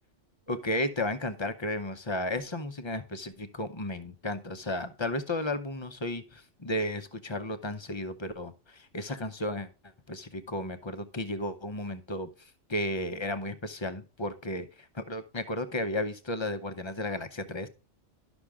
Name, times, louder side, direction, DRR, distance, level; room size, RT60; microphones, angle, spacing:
voice 1, 0.5-9.7 10.1-17.7, left 1 dB, 30° left, 10 dB, 0.6 m, -34 dB
11.5 x 6.2 x 3.5 m, 0.33 s
omnidirectional pair, 1.3 m